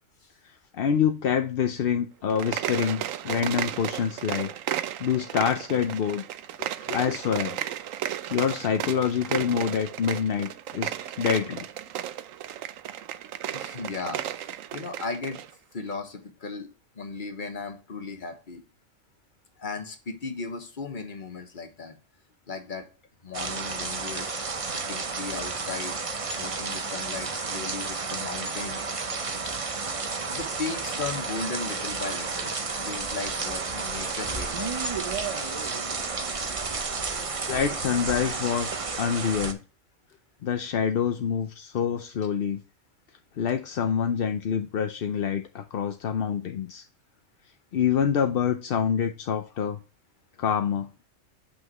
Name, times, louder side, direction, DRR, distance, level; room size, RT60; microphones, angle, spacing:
voice 1, 0.7-4.5 5.0-6.2 6.9-7.5 8.3-11.6 37.4-39.6 40.4-42.6 43.4-46.8 47.7-49.8 50.4-50.9, left 7 dB, 55° left, 7 dB, 0.7 m, -26 dB
sound 1, 2.2-15.5, right 11 dB, 90° right, 1.0 m, -34 dB
voice 2, 6.6-7.2 13.5-15.4 15.7-16.7 16.9-18.6 19.6-22.0 22.5-22.8 23.2-26.0 26.4-28.9 30.3-32.5 32.9-34.7, left 4 dB, 40° left, 6 dB, 1.3 m, -36 dB
sound 2, 23.3-39.5, right 4 dB, 30° right, 0.7 m, -31 dB
8.1 x 5.8 x 3.0 m, 0.34 s
omnidirectional pair, 1.3 m